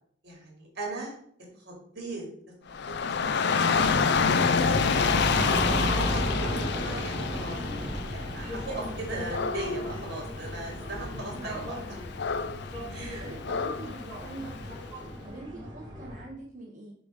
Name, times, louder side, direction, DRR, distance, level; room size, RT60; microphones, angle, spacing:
voice 1, 0.2-1.2 1.6-2.2 3.0-3.1 3.5-3.9 4.6-5.5 5.8-7.6 8.1-11.8 12.9-13.3 15.0-15.2, right 2 dB, 60° right, -1 dB, 2.4 m, -38 dB
Dog / Rain, 2.7-14.9, left 5 dB, 65° left, 0.5 m, -29 dB
sound 1, 3.7-16.2, equal, 25° right, 2.5 m, -35 dB
voice 2, 5.1-5.5 11.1-11.6 13.0-14.8 15.2-16.9, right 2 dB, 45° right, -3 dB, 1.1 m, -44 dB
6.7 x 3.8 x 5.1 m, 0.63 s
head